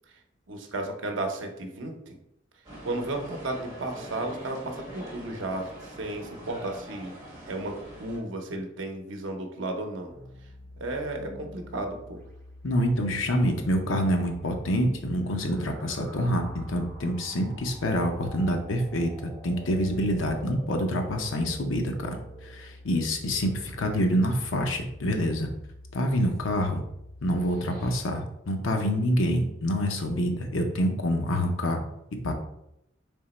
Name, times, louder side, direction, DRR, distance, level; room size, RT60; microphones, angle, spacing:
voice 1, 0.5-2.2 2.8-5.7 6.0-7.1 7.5-10.1 10.8-12.2, right 2 dB, 70° right, 3 dB, 0.7 m, -33 dB
sound 1, 2.6-8.2, right 1 dB, 20° right, 1.4 m, -43 dB
sound 2, 10.1-28.0, left 1 dB, 15° left, 1.1 m, -46 dB
voice 2, 12.6-22.2 22.4-25.5 25.9-26.8 27.2-31.8 32.2-32.3, equal, 80° left, 4 dB, 0.6 m, -26 dB
3.6 x 2.9 x 4.1 m, 0.81 s
head